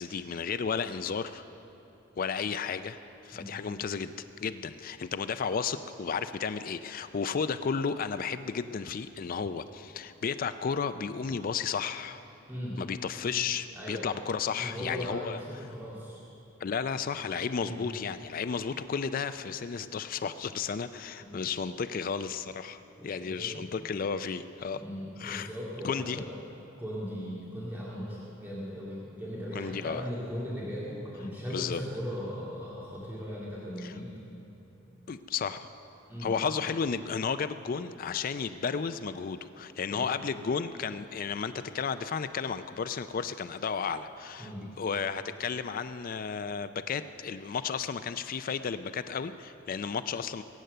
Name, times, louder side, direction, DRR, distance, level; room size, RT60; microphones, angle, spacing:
voice 1, 0.0-1.4 2.2-3.0 3.2-4.1 4.4-12.2 12.8-15.4 16.6-24.8 25.2-25.5 25.8-26.2 29.5-30.0 31.5-31.8 33.8-33.9 35.1-35.7 36.2-44.5 44.8-50.4, left 6 dB, 45° left, 12 dB, 0.4 m, -33 dB
voice 2, 12.5-12.8 13.7-14.2 14.5-16.2 17.1-17.3 17.6-17.8 21.2-21.4 23.0-23.7 24.7-26.3 26.8-34.1 36.1-36.5 39.9-40.0 44.4-44.7, equal, 10° right, -8 dB, 2.2 m, -38 dB
22.0 x 9.1 x 6.7 m, 2.9 s
head